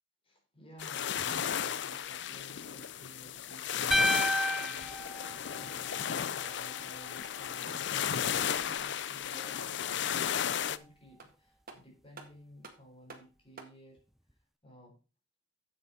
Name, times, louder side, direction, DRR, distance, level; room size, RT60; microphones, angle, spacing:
voice 1, 0.2-14.0 14.6-15.0, equal, 30° left, 4.2 m, -55 dB
sound 1, 0.8-10.8, left 9 dB, 70° left, 0.5 m, -34 dB
sound 2, 2.8-3.2 6.2-8.4 10.7-10.8 11.2-13.8, right 4 dB, 50° right, 1.8 m, -55 dB
sound 3, 3.9-6.2, equal, ahead, 0.4 m, -31 dB
9.0 x 8.1 x 4.2 m
head